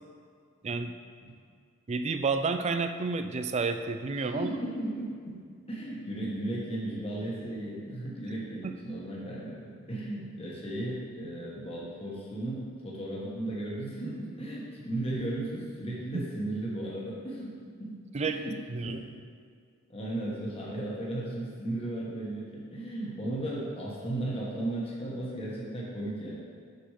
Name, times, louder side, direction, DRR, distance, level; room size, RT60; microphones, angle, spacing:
voice 1, 1.9-4.5 8.6-8.7 16.1-16.2 18.1-18.4 18.7-19.0, right 4 dB, 30° right, 8 dB, 0.4 m, -30 dB
voice 2, 4.2-5.3 5.7-17.5 17.8-19.2 19.9-26.4, right 1 dB, 25° left, -5 dB, 1.2 m, -35 dB
6.7 x 5.9 x 4.9 m, 2.2 s
head